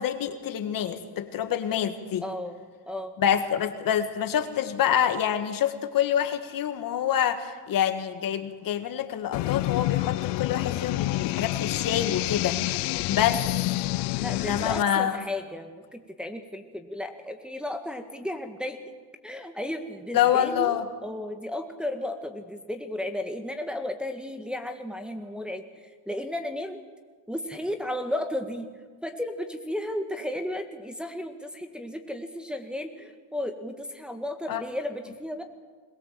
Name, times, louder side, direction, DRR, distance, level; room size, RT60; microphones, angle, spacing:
voice 1, 0.0-2.2 3.2-13.4 14.3-15.2 20.1-20.8 34.5-34.6, left 10 dB, 45° left, 8 dB, 1.9 m, -26 dB
voice 2, 2.2-2.6 2.9-3.1 14.2-18.8 19.2-26.8 27.3-28.7 29.0-35.4, left 1 dB, ahead, 4 dB, 1.8 m, -34 dB
sound 1, 9.3-14.8, left 19 dB, 65° left, 0.8 m, -28 dB
22.0 x 21.0 x 7.7 m, 1.5 s
cardioid pair, 115°, 45 cm